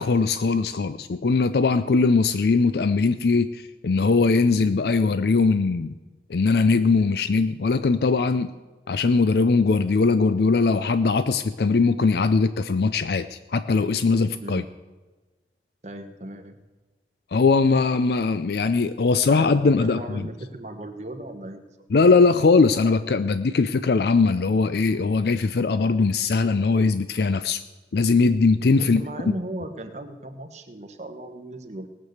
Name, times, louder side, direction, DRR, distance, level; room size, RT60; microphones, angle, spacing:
voice 1, 0.0-5.9 6.3-8.5 8.9-14.6 17.3-20.3 21.9-27.6 27.9-29.0, left 4 dB, 65° left, 12 dB, 0.4 m, -20 dB
voice 2, 14.4-14.7 15.8-16.6 19.4-21.7 28.7-31.9, right 1 dB, 40° right, 6 dB, 1.2 m, -37 dB
18.5 x 6.8 x 7.9 m, 1.2 s
head